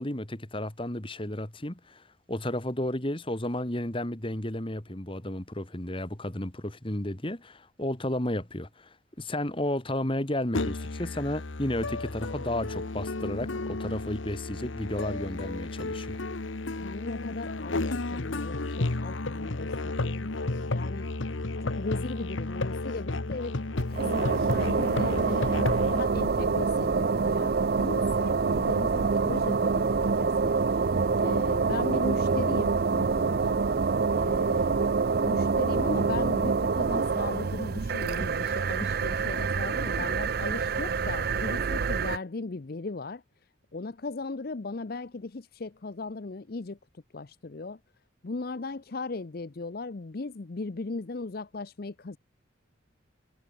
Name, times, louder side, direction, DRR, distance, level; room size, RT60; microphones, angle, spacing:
voice 1, 0.0-16.2, left 1 dB, 25° left, 2.0 m, -33 dB
Musical instrument, 10.5-26.0, left 2 dB, 75° left, 1.2 m, -32 dB
voice 2, 16.8-23.6 23.9-30.6 31.2-33.6 34.1-34.9 35.2-43.2 43.7-47.8 48.2-52.2, left 3 dB, 50° left, 0.6 m, -37 dB
sound 1, 23.8-42.2, right 4 dB, 50° right, 0.5 m, -26 dB
head